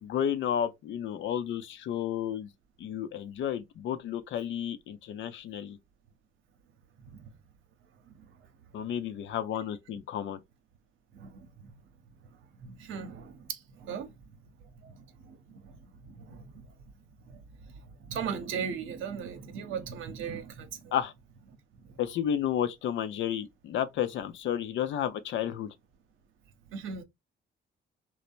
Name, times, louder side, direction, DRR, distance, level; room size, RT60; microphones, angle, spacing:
voice 1, 0.0-2.5 2.8-5.8 8.7-10.4 20.9-21.1 22.0-25.7, left 9 dB, 75° left, 0.6 m, -32 dB
voice 2, 7.0-7.3 8.1-8.3 11.1-11.7 12.6-14.1 14.7-16.7 17.2-20.9 21.8-22.0 26.7-27.0, right 7 dB, 80° right, 0.7 m, -39 dB
3.2 x 2.1 x 2.4 m
cardioid pair, 90°, 20 cm